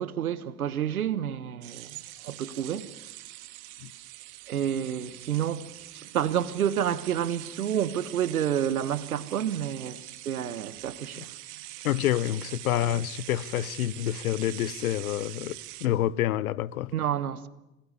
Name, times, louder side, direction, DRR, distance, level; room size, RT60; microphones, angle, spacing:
voice 1, 0.0-2.9 4.5-11.3 16.9-17.5, right 9 dB, 90° right, 1.2 m, -29 dB
sound 1, 1.6-15.9, right 17 dB, 65° right, 2.1 m, -44 dB
voice 2, 11.8-16.9, left 12 dB, 80° left, 0.9 m, -28 dB
27.0 x 19.5 x 9.8 m
hypercardioid pair, 70°, 42 cm